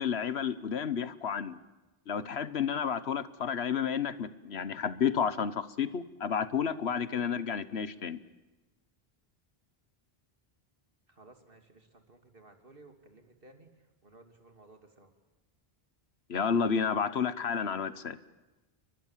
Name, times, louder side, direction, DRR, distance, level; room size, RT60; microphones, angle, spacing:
voice 1, 0.0-1.6 2.1-8.2 16.3-18.2, left 7 dB, 90° left, 15 dB, 1.4 m, -31 dB
voice 2, 11.1-13.7 14.0-15.1, right 2 dB, 60° right, 5 dB, 3.3 m, -57 dB
29.5 x 23.0 x 7.5 m, 1.1 s
omnidirectional pair, 1.0 m